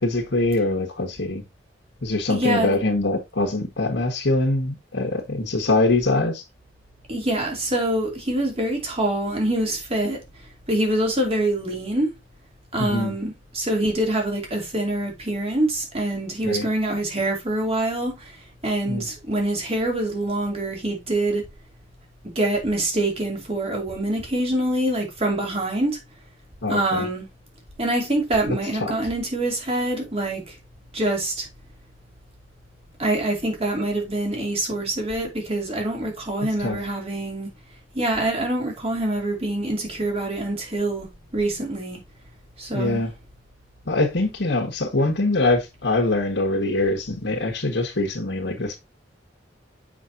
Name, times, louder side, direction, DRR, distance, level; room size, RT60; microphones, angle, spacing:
voice 1, 0.0-1.4 2.0-6.4 12.8-13.1 16.4-16.7 18.9-19.0 26.6-27.0 28.8-28.9 36.6-36.8 42.7-43.1 43.9-48.8, left 2 dB, 75° left, 1.6 m, -23 dB
voice 2, 2.3-2.7 7.1-10.2 10.7-12.1 12.7-21.5 22.2-26.0 26.7-27.3 27.8-30.6 30.9-31.5 33.0-37.5 37.9-41.1 41.3-42.0 42.6-43.0, right 1 dB, 35° right, 2.7 m, -25 dB
7.4 x 5.9 x 2.7 m
head